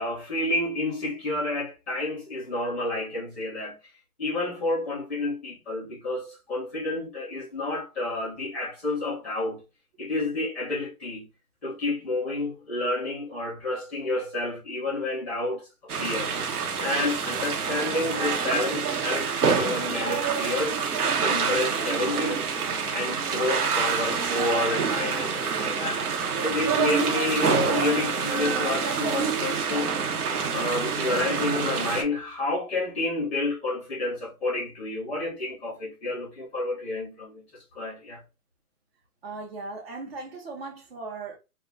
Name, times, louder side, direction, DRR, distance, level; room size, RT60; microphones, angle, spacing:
voice 1, 0.0-3.7 4.2-9.6 10.0-11.2 11.6-15.7 16.0-16.3 16.8-20.8 21.2-22.5 22.9-26.0 26.4-30.0 30.5-37.4 37.7-38.2, left 2 dB, ahead, 0.7 m, -29 dB
sound 1, 15.9-32.0, right 6 dB, 85° right, 1.0 m, -27 dB
voice 2, 39.2-41.4, right 3 dB, 45° right, 0.9 m, -38 dB
2.3 x 2.3 x 3.7 m
hypercardioid pair, 160°, 44 cm